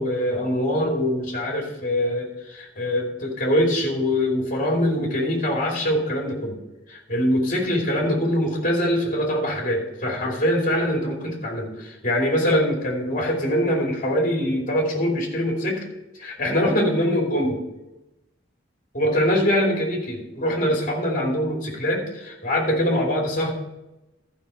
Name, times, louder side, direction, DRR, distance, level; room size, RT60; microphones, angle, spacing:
voice 1, 0.0-6.6 6.9-15.8 16.2-17.6 18.9-23.5, equal, 45° left, -1 dB, 2.7 m, -23 dB
13.0 x 5.8 x 5.6 m, 0.98 s
head